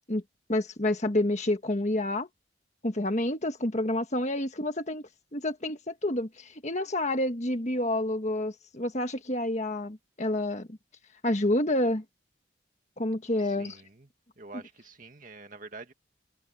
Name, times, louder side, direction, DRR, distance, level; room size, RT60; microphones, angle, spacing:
voice 1, 0.5-2.3 2.8-5.0 5.3-10.8 11.2-12.0 13.0-13.8, left 1 dB, 35° left, 1.6 m, -28 dB
voice 2, 13.4-14.1 14.4-15.9, right 3 dB, 40° right, 2.1 m, -47 dB
head